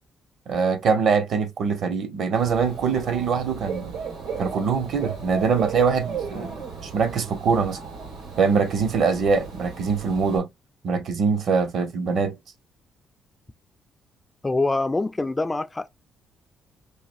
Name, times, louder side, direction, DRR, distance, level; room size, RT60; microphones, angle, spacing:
voice 1, 0.5-3.9 4.4-7.8 8.4-10.5 10.8-12.4, right 5 dB, 65° right, 1.0 m, -23 dB
Dog / Bird, 2.4-10.4, right 5 dB, 85° right, 1.9 m, -35 dB
voice 2, 14.4-15.9, left 2 dB, 15° left, 0.3 m, -24 dB
5.0 x 2.6 x 2.5 m
cardioid pair, 110°, 0 cm